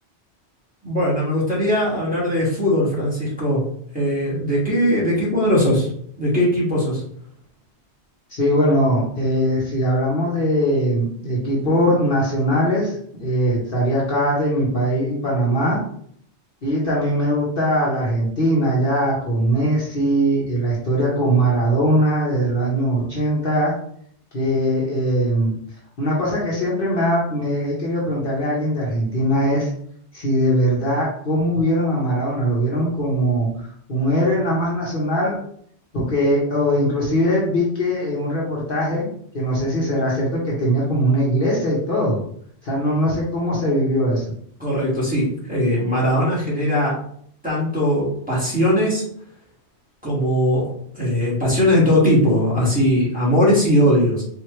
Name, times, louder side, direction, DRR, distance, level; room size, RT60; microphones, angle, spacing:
voice 1, 0.8-3.6 3.9-5.9 6.2-7.0 44.6-47.0 47.4-49.0 50.0-54.2, equal, 5° right, -7 dB, 1.7 m, -19 dB
voice 2, 8.3-15.8 16.6-23.7 24.3-25.5 26.0-29.7 30.1-35.4 35.9-39.1 39.3-42.2 42.6-44.2, equal, 50° left, -5 dB, 1.2 m, -21 dB
4.5 x 2.8 x 3.1 m, 0.64 s
omnidirectional pair, 1.2 m